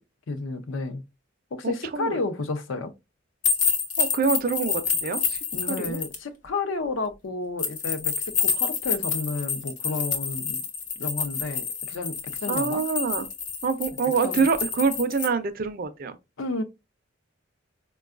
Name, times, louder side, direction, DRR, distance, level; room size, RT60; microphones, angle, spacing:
voice 1, 0.3-1.0 1.5-2.9 5.5-10.6 11.0-12.8 14.2-14.5 16.4-16.6, left 3 dB, 85° left, 0.6 m, -31 dB
voice 2, 1.6-2.2 4.0-6.0 12.5-13.3 13.6-16.2, right 5 dB, 50° right, 0.4 m, -26 dB
sound 1, 3.4-6.2 7.6-15.3, left 6 dB, 40° left, 0.8 m, -28 dB
4.4 x 2.2 x 2.4 m
head